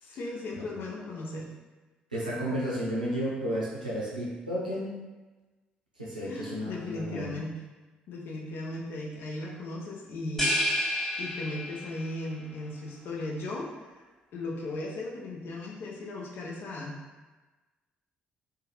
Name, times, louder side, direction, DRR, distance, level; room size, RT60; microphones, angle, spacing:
voice 1, 0.0-1.5 6.3-7.6 8.1-10.5 11.2-13.7 14.3-17.0, left 2 dB, 55° left, -3 dB, 0.6 m, -37 dB
voice 2, 0.5-0.8 2.1-4.9 6.0-7.4, equal, 90° right, -7 dB, 0.5 m, -32 dB
sound 1, 10.4-12.1, equal, 10° left, 0.9 m, -29 dB
2.7 x 2.2 x 3.0 m, 1.2 s
figure-of-eight pair, 45°, 4 cm